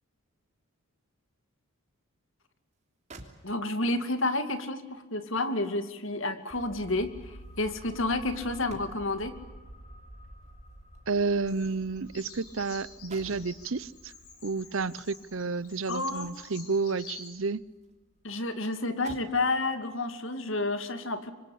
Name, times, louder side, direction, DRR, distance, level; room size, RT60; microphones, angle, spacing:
sound 1, 2.7-2.8 3.1-3.9 5.3-9.3 10.4-12.6 12.8-13.6 15.1-16.6 17.0-18.0 18.3-18.4 18.8-19.5 20.2-20.4, right 2 dB, 30° right, 3.1 m, -53 dB
voice 1, 3.4-9.4 15.9-16.3 18.2-21.3, left 2 dB, 60° left, 9 dB, 2.4 m, -30 dB
sound 2, 6.5-17.9 18.2-18.3, right 1 dB, 30° left, 5.3 m, -51 dB
voice 2, 11.1-14.1 14.4-17.6, right 4 dB, 65° right, 19 dB, 0.8 m, -31 dB
Bird vocalization bird call bird song, 11.5-17.3, left 5 dB, 90° left, 6.5 m, -49 dB
25.5 x 24.5 x 8.6 m, 1.2 s
head